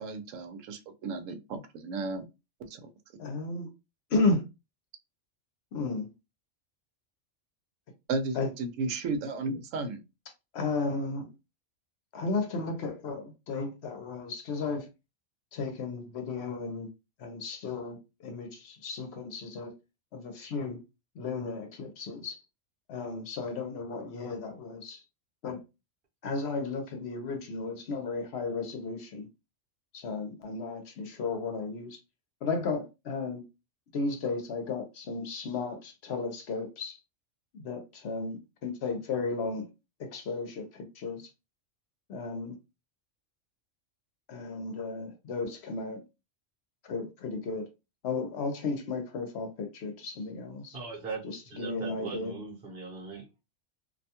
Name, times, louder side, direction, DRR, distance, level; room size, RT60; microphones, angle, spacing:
voice 1, 0.0-2.2 2.6-2.9 8.1-10.0, right 3 dB, 85° right, 1.0 m, -34 dB
voice 2, 3.2-3.7 4.1-4.4 5.7-6.1 8.3-8.5 10.5-11.3 12.1-14.9 15.5-16.9 17.2-19.7 20.1-20.8 21.2-22.4 22.9-25.0 25.4-25.6 26.2-29.3 29.9-32.0 32.4-33.4 33.9-37.0 37.5-39.7 40.0-41.2 42.1-42.6 44.3-46.0 46.8-47.7 48.0-50.8 51.6-52.3, left 3 dB, 65° left, 0.8 m, -34 dB
voice 3, 50.7-51.2 51.5-53.4, right 4 dB, 55° right, 1.0 m, -39 dB
2.5 x 2.2 x 2.7 m
omnidirectional pair, 1.3 m